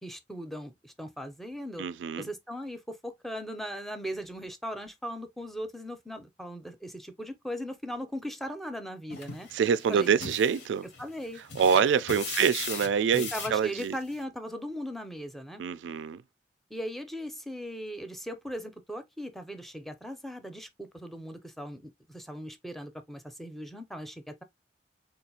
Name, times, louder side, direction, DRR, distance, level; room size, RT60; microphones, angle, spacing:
voice 1, 0.0-1.9 2.2-9.5 9.9-10.1 11.0-11.4 12.4-12.5 13.1-15.6 16.7-24.4, equal, ahead, 0.5 m, -38 dB
voice 2, 1.8-2.3 9.5-10.9 11.6-14.0 15.6-16.2, right 7 dB, 80° right, 0.3 m, -26 dB
sound 1, 9.1-14.2, left 5 dB, 70° left, 0.9 m, -40 dB
3.8 x 2.4 x 2.8 m
head